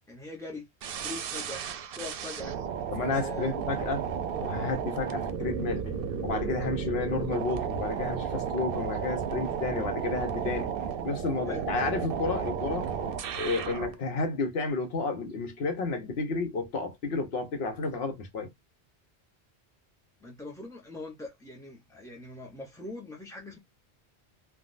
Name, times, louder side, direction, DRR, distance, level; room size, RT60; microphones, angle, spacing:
voice 1, 0.1-1.6 1.9-2.6 3.1-3.6 11.5-11.7 20.2-23.6, left 2 dB, 5° left, 0.4 m, -42 dB
sound 1, 0.8-13.9, right 7 dB, 65° right, 0.7 m, -33 dB
voice 2, 2.9-4.0 4.4-5.9 6.2-10.7 11.0-12.9 13.4-18.5, left 3 dB, 70° left, 1.1 m, -31 dB
3.5 x 2.2 x 2.4 m
omnidirectional pair, 1.1 m